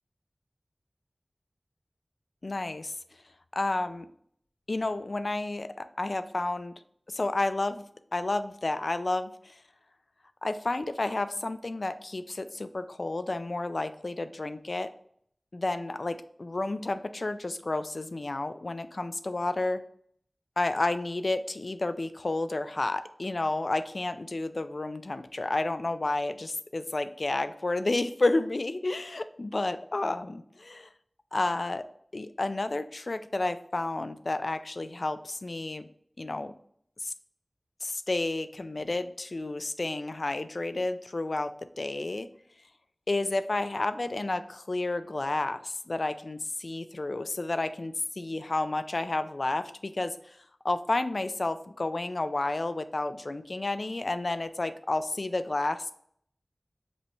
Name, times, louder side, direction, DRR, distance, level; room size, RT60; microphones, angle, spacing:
voice 1, 2.4-2.9 3.5-4.1 4.7-6.7 7.1-7.8 8.1-9.6 10.4-14.9 15.5-19.8 20.6-30.9 31.3-31.8 32.1-35.9 36.2-36.5 37.0-37.1 37.8-42.3 43.1-50.4 50.6-55.9, left 2 dB, 65° left, 10 dB, 0.3 m, -31 dB
5.3 x 3.1 x 3.0 m, 0.65 s
wide cardioid pair, 60°, 0 cm